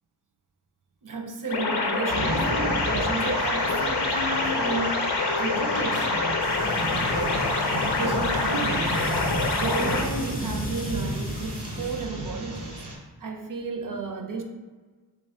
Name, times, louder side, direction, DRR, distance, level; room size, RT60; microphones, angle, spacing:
voice 1, 1.0-9.1 9.6-12.8 13.2-14.4, right 3 dB, 55° right, 4 dB, 0.6 m, -33 dB
sound 1, 1.5-10.0, left 3 dB, 85° left, 0.6 m, -26 dB
sound 2, 2.1-12.9, right 1 dB, 90° right, 0.8 m, -33 dB
sound 3, 6.4-12.1, left 2 dB, 20° left, 0.6 m, -44 dB
3.1 x 2.4 x 4.2 m, 1.4 s
cardioid pair, 45°, 39 cm